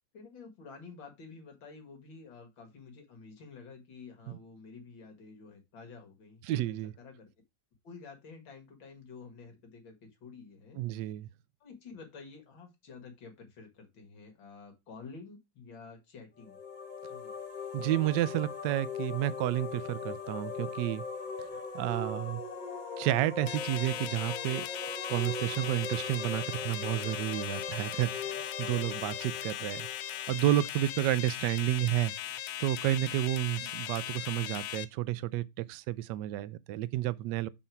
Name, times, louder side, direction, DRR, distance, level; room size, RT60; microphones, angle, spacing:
voice 1, 0.1-7.3 7.8-10.8 11.6-16.6 17.1-17.3, left 4 dB, 65° left, 2.5 m, -50 dB
voice 2, 6.5-6.9 10.8-11.3 17.7-21.0 21.7-22.4 23.0-24.7 25.1-29.9 30.3-32.1 32.6-37.5, right 14 dB, 80° right, 1.0 m, -31 dB
sound 1, 16.4-31.1, left 4 dB, 30° left, 1.0 m, -40 dB
sound 2, 23.5-34.8, left 12 dB, 85° left, 1.5 m, -39 dB
7.7 x 4.2 x 4.5 m
omnidirectional pair, 2.4 m